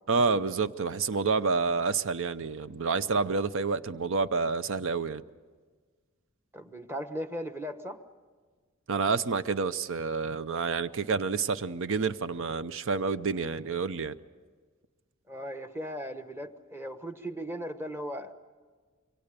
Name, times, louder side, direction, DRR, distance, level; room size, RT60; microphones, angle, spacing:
voice 1, 0.1-5.2 8.9-14.2, right 4 dB, 65° right, 0.7 m, -28 dB
voice 2, 6.5-8.0 15.3-18.3, equal, 10° right, 1.1 m, -37 dB
26.5 x 24.0 x 6.8 m
head